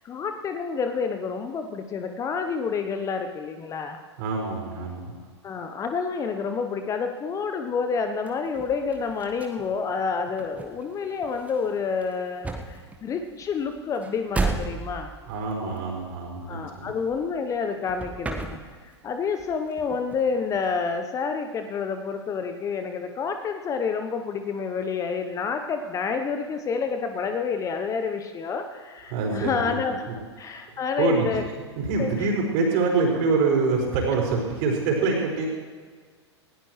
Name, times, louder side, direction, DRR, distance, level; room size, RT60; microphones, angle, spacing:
voice 1, 0.0-4.0 5.4-15.1 16.5-18.6 19.0-30.0 30.4-31.4 32.0-32.3, left 5 dB, 20° left, 6 dB, 1.0 m, -29 dB
voice 2, 4.2-5.1 15.3-16.9 29.1-29.8 30.1-30.2 31.0-31.3 31.8-35.5, right 4 dB, 45° right, -1 dB, 5.3 m, -25 dB
sound 1, 8.3-17.6 17.8-19.1 19.4-20.9, right 3 dB, 10° right, 1.5 m, -35 dB
19.5 x 17.5 x 3.3 m, 1.5 s
figure-of-eight pair, 95°, 15 cm